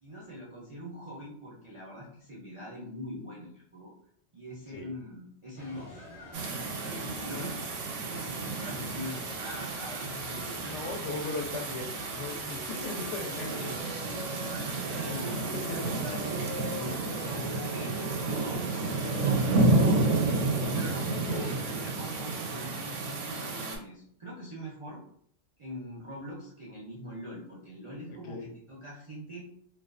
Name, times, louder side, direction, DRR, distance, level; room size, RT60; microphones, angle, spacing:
voice 1, 0.0-3.9 4.3-6.0 6.8-10.7 13.4-20.4 20.7-25.0 25.6-29.5, equal, 50° right, -6 dB, 0.4 m, -43 dB
sound 1, 5.6-18.6, left 1 dB, 50° left, 0.9 m, -47 dB
sound 2, 6.3-23.8, right 2 dB, 85° right, 0.9 m, -31 dB
voice 2, 10.6-13.6 14.5-14.6 15.3-15.4 18.7-18.9 21.1-21.5 28.3-28.5, left 3 dB, 80° left, 2 dB, 0.9 m, -38 dB
Wind instrument woodwind instrument, 12.0-19.4, left 1 dB, 25° left, 0.3 m, -46 dB
2.4 x 2.2 x 2.4 m, 0.65 s
omnidirectional pair, 1.2 m